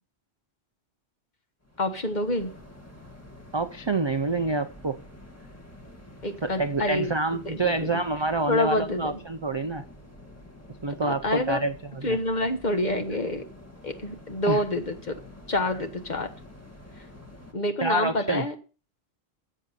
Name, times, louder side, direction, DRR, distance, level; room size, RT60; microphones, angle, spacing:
sound 1, 1.6-17.5, left 1 dB, 15° left, 1.7 m, -48 dB
voice 1, 1.8-2.5 6.2-7.1 7.4-8.0 8.5-9.2 11.0-11.6 12.0-13.4 13.8-15.1 15.5-16.3 17.0-17.1 17.5-18.5, left 1 dB, 40° left, 6 dB, 1.3 m, -27 dB
voice 2, 3.5-5.0 6.4-9.8 10.8-11.7 12.0-12.2 14.5-14.6 17.8-18.5, right 3 dB, 35° right, 9 dB, 0.4 m, -27 dB
10.5 x 7.8 x 4.2 m, 0.36 s
omnidirectional pair, 1.2 m